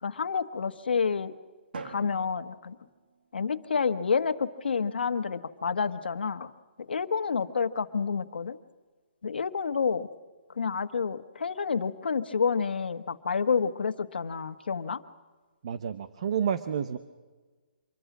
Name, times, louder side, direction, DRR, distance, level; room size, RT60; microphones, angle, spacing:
voice 1, 0.0-1.3 1.8-2.7 3.3-6.5 6.9-8.6 9.2-10.1 10.6-15.0, left 5 dB, 80° left, 8 dB, 1.4 m, -29 dB
Drum, 1.7-3.7, right 4 dB, 70° right, 1.8 m, -45 dB
voice 2, 15.6-17.0, right 8 dB, 35° right, 12 dB, 0.8 m, -30 dB
26.0 x 22.0 x 6.1 m, 1.4 s
hypercardioid pair, 175°, 5 cm